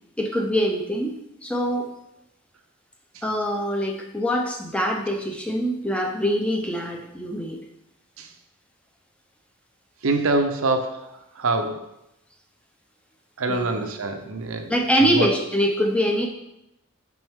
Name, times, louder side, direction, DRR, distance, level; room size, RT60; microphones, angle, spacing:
voice 1, 0.2-1.2 1.4-1.9 3.2-7.6 13.5-13.8 14.7-16.3, equal, 5° left, 1 dB, 0.6 m, -24 dB
voice 2, 10.0-11.9 13.4-14.7 15.0-15.3, right 2 dB, 70° right, 5 dB, 0.7 m, -25 dB
6.0 x 5.4 x 3.6 m, 0.83 s
head